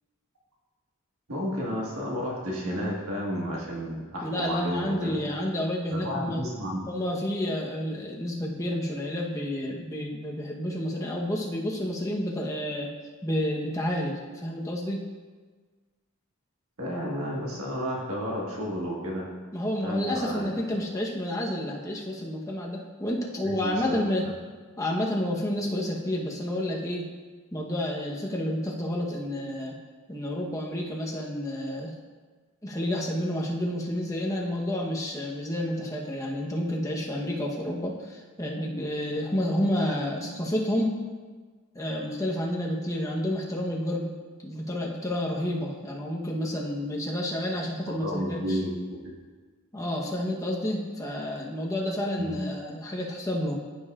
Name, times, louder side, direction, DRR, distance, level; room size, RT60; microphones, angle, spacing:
voice 1, 1.3-5.2 5.9-6.9 16.8-19.3 19.8-20.5 23.4-24.0 47.9-49.1 52.1-52.4, equal, 75° right, -3 dB, 1.6 m, -32 dB
voice 2, 4.2-6.4 6.9-12.9 13.2-15.0 19.5-24.2 24.8-27.1 27.5-29.8 30.1-31.9 32.6-41.0 41.7-44.1 44.4-48.6 49.7-53.6, left 1 dB, 15° left, -2 dB, 1.0 m, -30 dB
14.0 x 5.4 x 2.4 m, 1.4 s
head